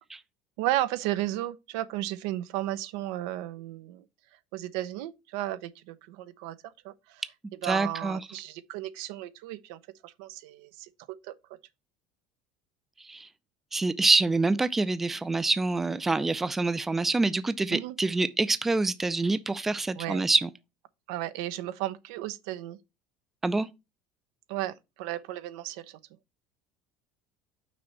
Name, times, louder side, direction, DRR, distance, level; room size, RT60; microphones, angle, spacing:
voice 1, 0.6-4.0 4.5-7.2 7.6-10.9 11.2-11.3 17.7-17.9 20.0-20.2 21.1-22.8 24.5-26.0, right 14 dB, 80° right, 0.7 m, -34 dB
voice 2, 7.6-8.2 13.0-13.3 13.7-20.5 23.4-23.7, right 3 dB, 10° right, 0.5 m, -26 dB
6.0 x 4.2 x 6.0 m
supercardioid pair, 125°, 2 cm